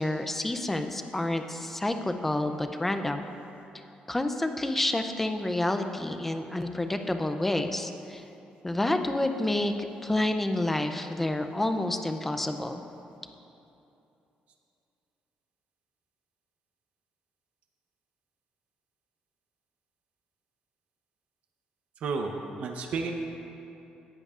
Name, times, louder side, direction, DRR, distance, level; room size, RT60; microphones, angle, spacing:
voice 1, 0.0-3.3 4.1-8.2 8.6-9.7 10.0-12.8, left 1 dB, 10° left, 7 dB, 0.4 m, -29 dB
voice 2, 22.0-23.1, right 4 dB, 55° right, 3 dB, 0.8 m, -32 dB
17.5 x 11.0 x 2.4 m, 2.9 s
cardioid pair, 175°, 3 cm